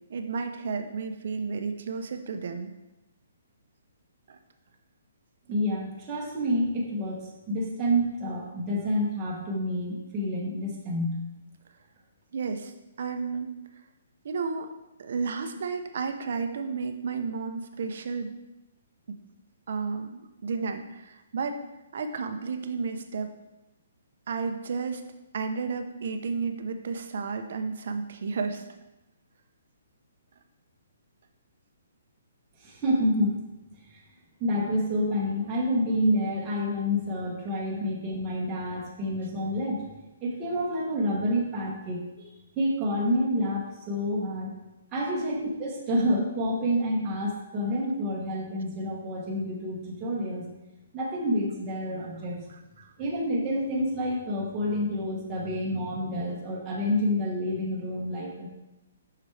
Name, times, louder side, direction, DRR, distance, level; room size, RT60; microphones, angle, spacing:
voice 1, 0.1-2.7 4.3-4.4 12.3-12.7 13.0-13.5 14.2-14.7 15.0-18.3 19.1-19.2 19.7-21.6 21.9-23.3 24.3-25.0 25.3-28.6 45.1-45.3 52.8-52.9, right 5 dB, 45° right, 7 dB, 0.6 m, -32 dB
voice 2, 5.5-7.2 7.5-11.2 32.6-33.3 33.9-34.0 34.4-39.8 40.2-42.3 42.6-44.5 44.9-50.5 50.9-52.4 53.0-58.5, equal, 10° right, -5 dB, 1.0 m, -28 dB
7.7 x 5.8 x 3.3 m, 1.0 s
hypercardioid pair, 180°, 0 cm